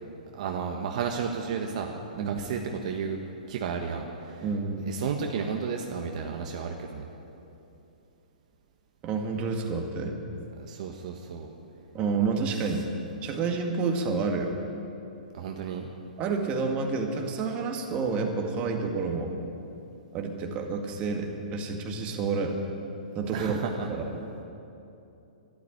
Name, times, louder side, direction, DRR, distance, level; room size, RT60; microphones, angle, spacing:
voice 1, 0.3-3.2 3.5-4.5 4.9-7.1 10.6-11.5 15.3-15.9 23.3-23.9, right 6 dB, 55° right, 2 dB, 1.4 m, -33 dB
voice 2, 4.4-4.9 9.0-10.2 11.9-12.9 13.2-14.6 16.2-19.4 20.1-22.6 23.2-23.6 23.9-24.2, right 4 dB, 30° right, 2 dB, 2.0 m, -29 dB
12.0 x 12.0 x 9.9 m, 2.8 s
hypercardioid pair, 130°, 5 cm